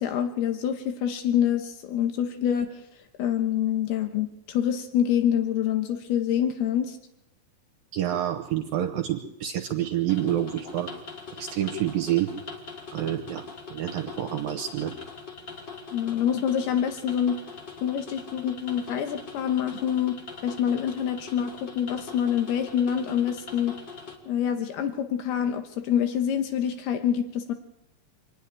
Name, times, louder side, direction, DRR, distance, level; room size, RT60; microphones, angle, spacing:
voice 1, 0.0-2.7 3.2-7.0 15.9-17.4 17.8-20.2 20.4-23.7 24.3-27.5, left 9 dB, 80° left, 6 dB, 3.1 m, -26 dB
voice 2, 7.9-10.9 11.4-12.3 12.9-14.9, right 11 dB, 70° right, 5 dB, 2.5 m, -28 dB
sound 1, 10.1-24.2, left 4 dB, 30° left, 2.9 m, -42 dB
26.0 x 9.9 x 10.0 m, 0.86 s
omnidirectional pair, 4.5 m